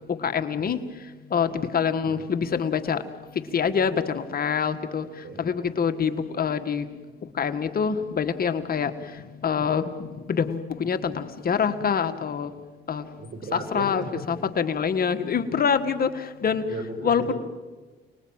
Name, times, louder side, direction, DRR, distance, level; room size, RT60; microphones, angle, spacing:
voice 1, 0.2-0.8 1.3-3.0 3.5-5.0 5.4-6.9 7.4-9.1 9.4-12.5 12.9-13.0 13.5-16.6 17.0-17.3, left 6 dB, 50° left, 8 dB, 1.7 m, -25 dB
voice 2, 13.2-14.3 16.7-17.3, right 3 dB, 65° right, 6 dB, 6.3 m, -35 dB
29.0 x 20.5 x 8.9 m, 1.3 s
cardioid pair, 90°, 20 cm